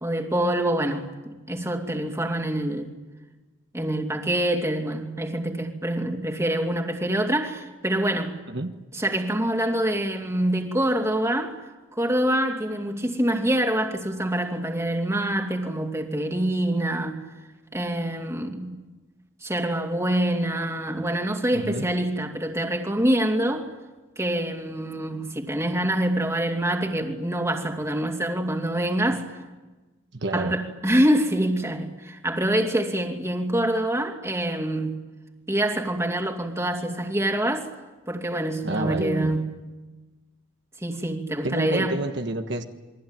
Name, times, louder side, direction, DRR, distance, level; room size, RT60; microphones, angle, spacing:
voice 1, 0.0-2.9 3.7-8.4 8.9-11.7 11.9-17.2 17.7-18.8 19.4-23.7 24.2-29.3 30.3-35.0 35.5-37.7 38.1-39.5 40.8-42.0, right 1 dB, 15° right, 2.7 m, -25 dB
voice 2, 21.5-21.9 30.1-30.6 38.6-39.4 41.4-42.6, right 2 dB, 65° right, 1.5 m, -29 dB
28.5 x 23.0 x 9.1 m
head